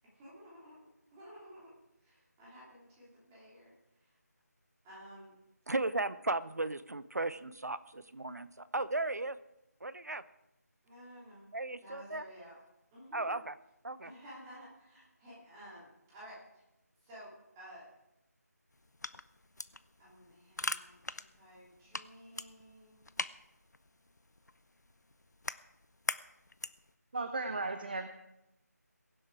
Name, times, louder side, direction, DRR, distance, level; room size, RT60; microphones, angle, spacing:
voice 1, 0.0-0.8 1.1-1.7 2.0-4.2 4.8-5.3 5.6-5.7 10.8-11.5 11.8-12.6 12.9-13.3 14.0-16.6 17.0-17.9 20.0-23.2, equal, 10° right, -8 dB, 3.0 m, -53 dB
voice 2, 5.7-9.4 9.8-10.2 11.5-12.2 13.1-13.5 13.8-14.1, right 2 dB, 65° right, 16 dB, 0.8 m, -35 dB
sound 1, 18.7-26.9, left 2 dB, 70° left, 0.7 m, -43 dB
voice 3, 27.1-28.1, right 3 dB, 30° right, 8 dB, 0.7 m, -35 dB
22.5 x 7.6 x 4.8 m, 0.88 s
figure-of-eight pair, 165°, 9 cm